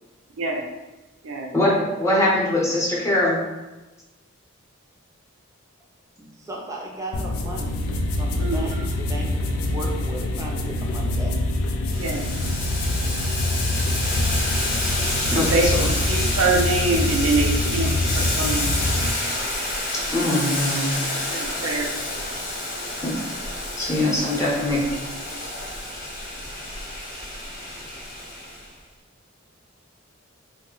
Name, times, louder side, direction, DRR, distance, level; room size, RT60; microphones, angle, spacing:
voice 1, 0.4-0.7 1.2-1.5 8.4-8.9 12.0-12.3 15.3-15.7 16.0-18.7 21.3-21.9, right 3 dB, 75° right, 1 dB, 0.5 m, -24 dB
voice 2, 2.0-3.4 15.3-15.9 20.1-21.0 23.0-23.2 23.8-24.8, left 1 dB, 15° left, -5 dB, 0.7 m, -22 dB
voice 3, 6.2-7.8 8.2-11.4, right 1 dB, 15° right, -2 dB, 0.5 m, -35 dB
sound 1, 7.1-19.1, left 1 dB, 70° left, 0.3 m, -25 dB
Boiling, 11.9-28.7, left 1 dB, 45° left, 0.7 m, -29 dB
2.6 x 2.1 x 3.7 m, 1.1 s
head